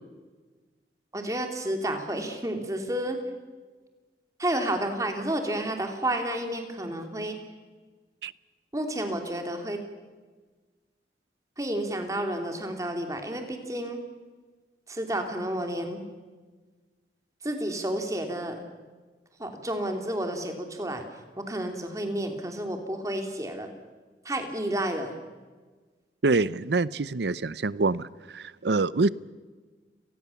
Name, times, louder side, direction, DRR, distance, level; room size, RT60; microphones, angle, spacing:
voice 1, 1.1-3.2 4.4-7.4 8.7-9.8 11.6-14.0 14.9-16.0 17.4-18.6 19.4-21.0 21.4-23.7 24.2-25.1, right 1 dB, 20° right, 5 dB, 2.8 m, -31 dB
voice 2, 26.2-29.1, right 3 dB, 75° right, 19 dB, 0.7 m, -25 dB
30.0 x 19.5 x 7.1 m, 1.4 s
head